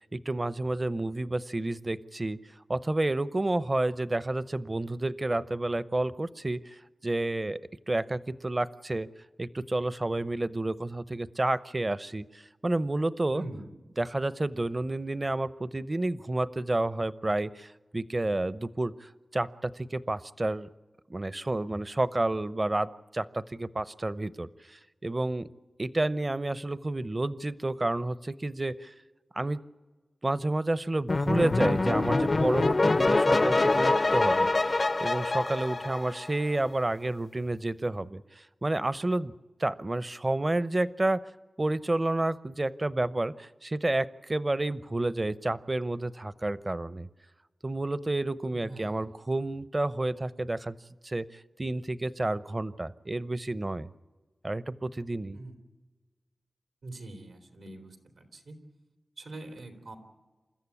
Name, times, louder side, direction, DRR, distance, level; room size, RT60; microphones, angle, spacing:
voice 1, 0.1-2.4 2.7-6.8 7.0-7.6 7.9-9.1 9.4-13.4 14.0-20.7 21.1-25.5 25.8-28.9 29.3-29.6 30.2-39.3 39.6-41.2 41.6-47.1 47.6-50.8 51.0-53.9 54.4-55.4, right 2 dB, 35° right, 15 dB, 0.8 m, -30 dB
voice 2, 13.3-13.7 48.5-49.0 55.3-55.5 56.8-58.6 59.2-60.0, right 2 dB, 90° right, 4 dB, 3.3 m, -43 dB
sound 1, 31.1-36.5, left 2 dB, 50° left, 0.6 m, -25 dB
28.5 x 14.0 x 8.5 m, 1.3 s
cardioid pair, 40°, 0 cm